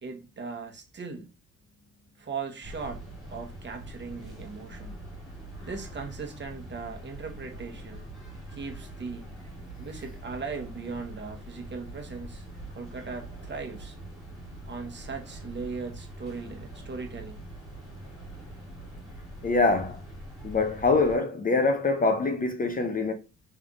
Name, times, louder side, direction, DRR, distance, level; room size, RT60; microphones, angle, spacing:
voice 1, 0.0-1.3 2.2-3.0 3.3-5.0 5.6-8.0 8.5-9.3 9.8-12.4 12.7-14.0 14.7-17.4, right 4 dB, 35° right, 1.1 m, -38 dB
sound 1, 2.6-21.2, right 1 dB, ahead, 2.7 m, -43 dB
voice 2, 19.4-20.0 20.4-23.1, left 3 dB, 30° left, 0.7 m, -24 dB
5.4 x 3.3 x 2.5 m
cardioid pair, 90°, 30 cm